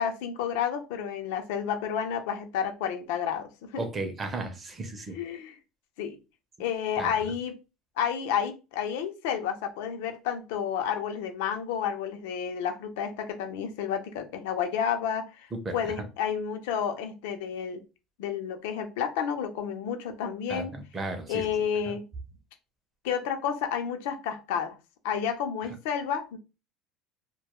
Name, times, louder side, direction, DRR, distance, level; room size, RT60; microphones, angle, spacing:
voice 1, 0.0-3.8 5.1-5.6 6.0-6.2 6.6-7.6 8.0-15.5 15.7-17.8 18.2-20.7 21.3-22.0 23.0-24.8 25.0-26.4, left 8 dB, 85° left, 0.5 m, -30 dB
voice 2, 3.8-5.2 7.0-7.1 15.5-15.7 20.5-21.4, right 2 dB, 20° right, 0.5 m, -34 dB
2.2 x 2.1 x 2.9 m
cardioid pair, 155°, 0 cm